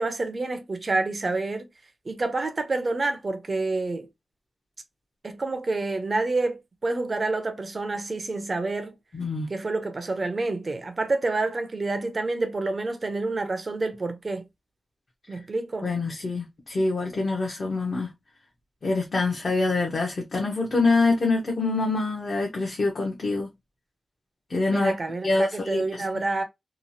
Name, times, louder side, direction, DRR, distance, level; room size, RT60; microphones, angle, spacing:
voice 1, 0.0-1.7 2.1-4.1 5.2-9.0 9.5-14.4 15.3-15.9 24.7-26.4, right 3 dB, 35° right, 0.6 m, -28 dB
voice 2, 9.1-9.5 15.8-18.1 18.8-23.5 24.5-24.9 25.2-26.0, left 3 dB, 45° left, 0.7 m, -25 dB
2.9 x 2.3 x 2.5 m
wide cardioid pair, 170°, 0 cm